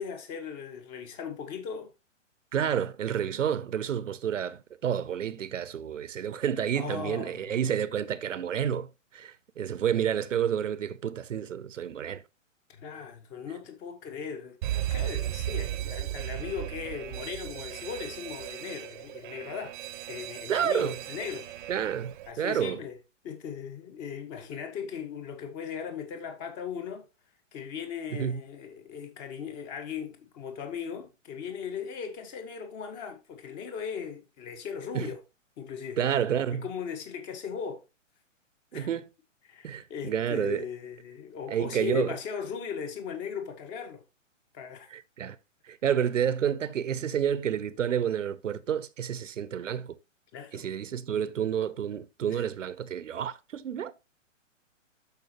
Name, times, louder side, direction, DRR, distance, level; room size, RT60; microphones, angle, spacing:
voice 1, 0.0-1.9 6.7-7.6 12.7-19.8 20.1-21.6 22.3-23.0 23.2-27.1 27.5-35.2 35.6-36.0 36.6-37.8 38.7-38.9 39.5-44.0 44.5-44.9 50.3-50.7 52.3-52.4, left 7 dB, 30° left, 1.9 m, -38 dB
voice 2, 2.5-12.2 20.5-20.9 21.7-22.8 28.1-28.4 34.9-35.1 36.0-36.7 38.7-39.1 39.6-40.6 41.5-42.2 44.9-45.4 45.6-50.0 50.5-54.0, right 9 dB, 70° right, 0.9 m, -30 dB
Alarm, 14.6-22.3, right 13 dB, 40° right, 0.9 m, -36 dB
12.5 x 5.1 x 3.0 m
figure-of-eight pair, 125°, 39 cm